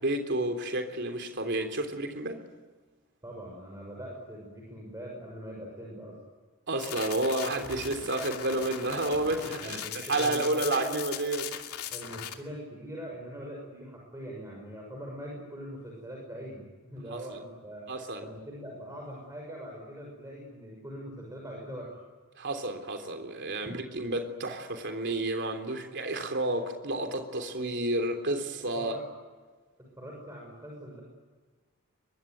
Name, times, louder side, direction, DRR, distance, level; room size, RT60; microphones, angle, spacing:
voice 1, 0.0-2.4 6.7-11.5 17.1-17.4 17.9-18.3 22.3-28.9, right 2 dB, 50° right, 5 dB, 3.4 m, -31 dB
voice 2, 3.2-6.2 9.6-11.0 11.9-17.9 18.2-22.0 28.8-29.0 29.8-31.0, equal, 15° right, -1 dB, 6.4 m, -42 dB
sound 1, 6.8-12.3, left 8 dB, 80° left, 2.6 m, -39 dB
23.5 x 23.0 x 9.3 m, 1.4 s
head